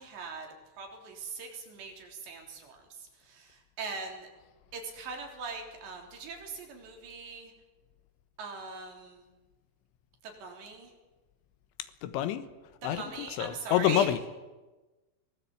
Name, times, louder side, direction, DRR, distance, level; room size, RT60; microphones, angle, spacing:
voice 1, 0.0-4.3 4.7-7.5 8.4-9.2 10.2-10.9 12.8-14.1, right 4 dB, 70° right, 2 dB, 5.8 m, -41 dB
voice 2, 12.0-12.5 12.8-14.3, left 11 dB, 85° left, 12 dB, 3.6 m, -28 dB
23.0 x 20.0 x 8.5 m, 1.2 s
omnidirectional pair, 5.3 m